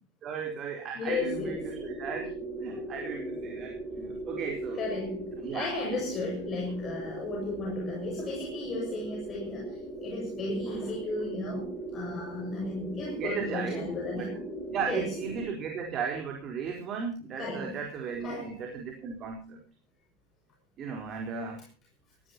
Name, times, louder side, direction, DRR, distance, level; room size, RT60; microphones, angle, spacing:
voice 1, 0.2-2.3 2.6-4.8 5.4-5.7 7.6-7.7 13.1-14.3 14.7-19.6 20.8-21.6, right 6 dB, 30° right, 1 dB, 4.3 m, -36 dB
voice 2, 0.9-1.7 4.7-14.4 14.9-15.2 17.4-17.8 18.2-18.5, left 2 dB, 25° left, 0 dB, 6.6 m, -35 dB
sound 1, 1.1-15.5, right 1 dB, 5° left, 7.4 m, -39 dB
22.5 x 16.5 x 3.0 m, 0.35 s
figure-of-eight pair, 90°, 0 cm